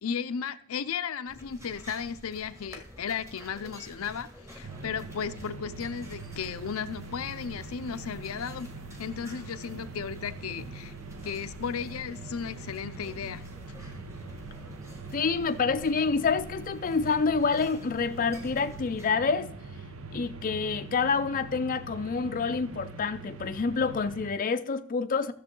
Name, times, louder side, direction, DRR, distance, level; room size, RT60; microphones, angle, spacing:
voice 1, 0.0-8.7 9.0-10.9 11.2-13.4, left 7 dB, 90° left, 0.5 m, -35 dB
sound 1, 1.3-19.1, equal, 15° right, 1.8 m, -49 dB
sound 2, 4.6-24.3, right 3 dB, 75° right, 0.9 m, -43 dB
voice 2, 15.1-19.5 20.1-25.3, left 5 dB, 40° left, 0.5 m, -27 dB
14.0 x 6.8 x 3.8 m
head